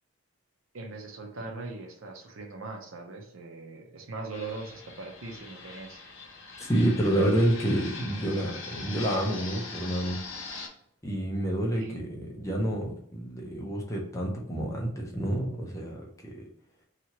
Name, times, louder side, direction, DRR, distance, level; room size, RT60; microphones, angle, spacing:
voice 1, 0.7-6.0 11.7-12.3, right 3 dB, 80° right, 3 dB, 0.6 m, -40 dB
Fixed-wing aircraft airplane, 4.3-10.7, left 4 dB, 70° left, 0.7 m, -42 dB
voice 2, 6.7-10.2 11.0-16.5, right 1 dB, 15° left, -1 dB, 0.6 m, -28 dB
2.8 x 2.4 x 2.9 m, 0.65 s
head